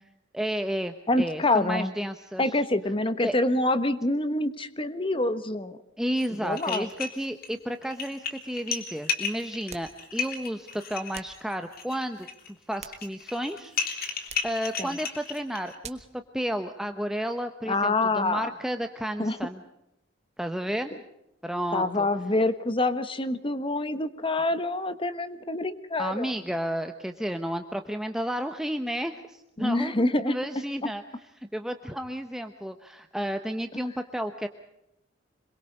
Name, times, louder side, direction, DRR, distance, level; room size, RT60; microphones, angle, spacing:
voice 1, 0.3-2.6 3.2-3.4 6.0-13.8 14.0-16.1 16.3-19.6 20.4-20.9 21.4-22.1 26.0-31.0 31.5-34.5, equal, 5° right, 6 dB, 0.9 m, -32 dB
voice 2, 1.1-1.9 2.4-5.8 6.4-6.9 14.8-14.9 17.7-18.5 19.2-19.4 21.7-26.3 29.6-30.3, left 2 dB, 25° left, 12 dB, 1.2 m, -26 dB
sound 1, 6.2-6.3 6.6-7.5 7.8-15.8, left 6 dB, 50° left, 3.2 m, -33 dB
sound 2, 9.7-10.0 11.1-11.5 12.5-13.4 14.3-14.6 15.8-16.2, right 7 dB, 35° right, 1.4 m, -45 dB
26.5 x 22.0 x 5.4 m, 0.84 s
head